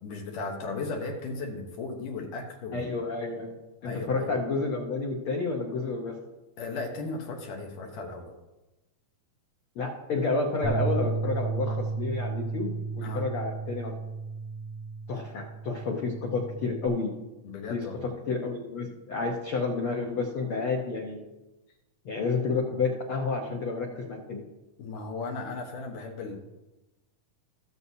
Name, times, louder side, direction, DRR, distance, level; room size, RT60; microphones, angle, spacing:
voice 1, 0.0-2.9 3.8-4.3 6.6-8.4 13.0-13.3 15.2-15.4 17.4-18.0 24.8-26.4, left 3 dB, 70° left, 2 dB, 2.5 m, -36 dB
voice 2, 2.7-3.5 3.8-6.2 9.7-13.9 15.1-17.1 17.7-21.2 22.0-24.4, left 4 dB, 85° left, 0 dB, 1.2 m, -30 dB
Bass guitar, 10.6-16.9, right 4 dB, 50° left, 2.4 m, -33 dB
19.5 x 7.0 x 2.8 m, 1.0 s
omnidirectional pair, 4.2 m